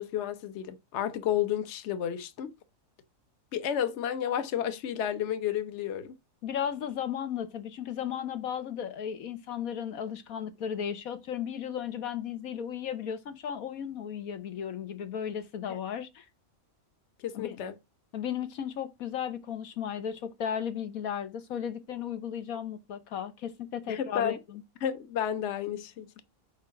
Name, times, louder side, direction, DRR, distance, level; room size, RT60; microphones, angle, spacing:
voice 1, 0.0-2.5 3.5-6.1 15.7-15.8 17.2-17.8 23.9-24.4 24.8-26.2, left 10 dB, 60° left, 1.1 m, -31 dB
voice 2, 6.4-16.2 17.3-17.6 18.1-24.6, left 8 dB, 85° left, 1.4 m, -35 dB
6.6 x 4.7 x 5.8 m
omnidirectional pair, 1.5 m